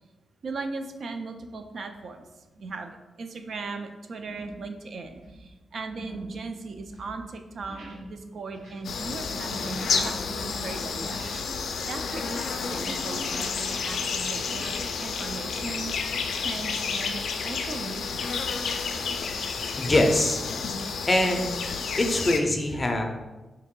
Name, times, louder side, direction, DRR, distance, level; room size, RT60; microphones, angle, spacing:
voice 1, 0.4-2.3 2.6-11.2 11.6-12.4 12.7-14.7 15.0-15.9 16.4-18.3, right 3 dB, 55° right, 6 dB, 0.3 m, -38 dB
sound 1, 2.5-2.9 3.4-3.6 4.2-4.7 5.0-11.6 11.9-13.3 13.6-14.8, right 1 dB, 80° right, 1.1 m, -44 dB
sound 2, 8.8-22.4, left 5 dB, 85° left, 0.3 m, -30 dB
voice 2, 19.5-20.4 21.1-21.5 22.0-23.0, left 1 dB, 25° left, 3 dB, 0.4 m, -23 dB
3.8 x 2.8 x 3.6 m, 1.1 s
wide cardioid pair, 150°, 0 cm